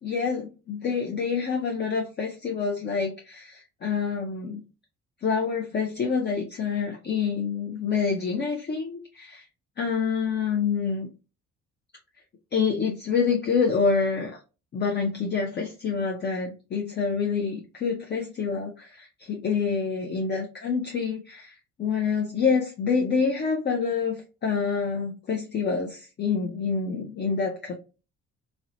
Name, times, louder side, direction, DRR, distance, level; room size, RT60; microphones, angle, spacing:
voice 1, 0.0-4.6 5.2-9.4 9.8-11.1 12.5-14.4 14.7-27.7, left 5 dB, 35° left, 1 dB, 0.5 m, -27 dB
2.7 x 2.1 x 2.5 m, 0.31 s
cardioid pair, 90°, 30 cm